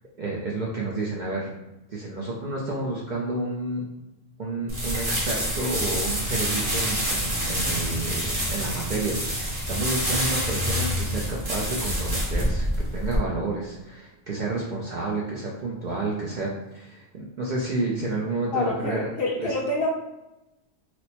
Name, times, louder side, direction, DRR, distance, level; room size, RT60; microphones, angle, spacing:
voice 1, 0.2-1.6 1.9-3.8 4.4-12.7 12.9-19.1 19.4-19.5, right 2 dB, 55° right, -3 dB, 0.5 m, -30 dB
sound 1, 4.7-13.2, equal, 35° right, 0.8 m, -27 dB
voice 2, 18.5-19.9, left 2 dB, 60° left, -1 dB, 0.7 m, -27 dB
3.0 x 2.1 x 4.1 m, 0.97 s
omnidirectional pair, 1.3 m